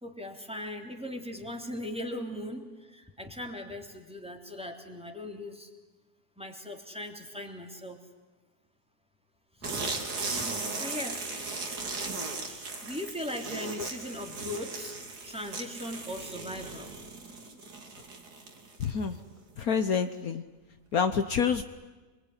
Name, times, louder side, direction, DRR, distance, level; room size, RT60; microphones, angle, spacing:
voice 1, 0.0-5.7 6.4-8.0 9.6-11.3 12.4-15.0 15.2-16.9, left 1 dB, 5° right, 3 dB, 3.1 m, -39 dB
sound 1, 9.6-19.1, right 3 dB, 70° right, 3.3 m, -37 dB
voice 2, 18.8-19.2 19.6-20.4 20.9-21.6, left 6 dB, 60° left, 9 dB, 1.5 m, -27 dB
26.0 x 22.0 x 9.8 m, 1.3 s
omnidirectional pair, 1.8 m